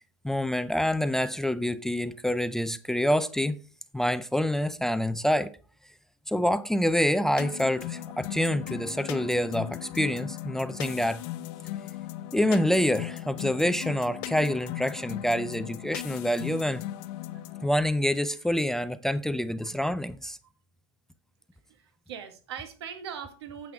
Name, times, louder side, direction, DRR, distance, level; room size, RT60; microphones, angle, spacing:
voice 1, 0.2-3.6 3.9-5.5 6.3-11.2 12.3-16.8 17.6-20.4, left 1 dB, 5° left, 0.4 m, -27 dB
sound 1, 7.4-17.7, left 14 dB, 55° left, 0.8 m, -38 dB
voice 2, 21.7-23.7, right 8 dB, 75° right, 1.7 m, -40 dB
9.2 x 7.8 x 3.4 m
hypercardioid pair, 120°, 14 cm